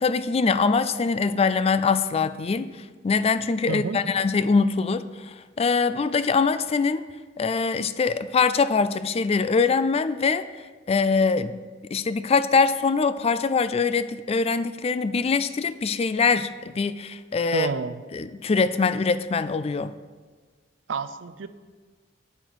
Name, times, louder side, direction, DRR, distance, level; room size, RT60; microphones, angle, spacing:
voice 1, 0.0-2.7 3.0-7.1 7.4-10.5 10.9-11.6 11.9-17.7 18.1-19.9, left 4 dB, 35° left, 13 dB, 0.4 m, -23 dB
voice 2, 3.7-4.0 17.5-18.0 20.9-21.5, right 4 dB, 90° right, 12 dB, 0.5 m, -29 dB
8.8 x 8.1 x 4.7 m, 1.4 s
head